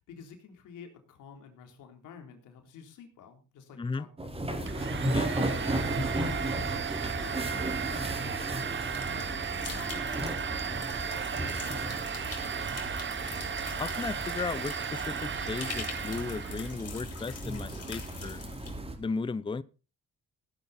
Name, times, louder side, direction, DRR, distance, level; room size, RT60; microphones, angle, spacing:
voice 1, 0.1-4.8 5.3-6.9 7.2-10.8 11.1-12.7, left 6 dB, 90° left, 3.8 m, -50 dB
sound 1, 4.2-19.0, right 1 dB, 20° right, 4.4 m, -35 dB
Domestic sounds home sounds, 4.7-16.8, right 7 dB, 40° right, 1.0 m, -35 dB
sound 2, 8.8-18.7, left 6 dB, 50° left, 4.7 m, -45 dB
voice 2, 13.8-18.4 19.0-19.6, left 4 dB, 15° left, 0.6 m, -35 dB
17.0 x 10.5 x 4.3 m
cardioid pair, 90°, 30 cm